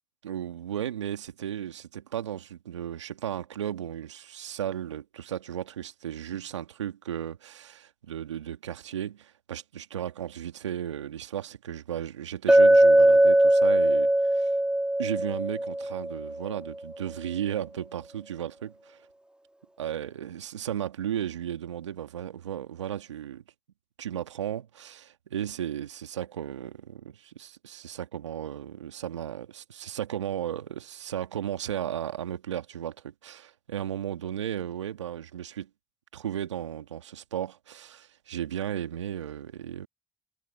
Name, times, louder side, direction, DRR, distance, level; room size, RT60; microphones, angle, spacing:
voice 1, 0.2-14.5 15.0-19.0 19.8-23.4 24.0-35.7 36.1-39.9, right 10 dB, 85° right, 2.1 m, -35 dB
Chink clink, 12.5-16.5, right 1 dB, 5° right, 1.8 m, -20 dB
hypercardioid pair, 45°, 15 cm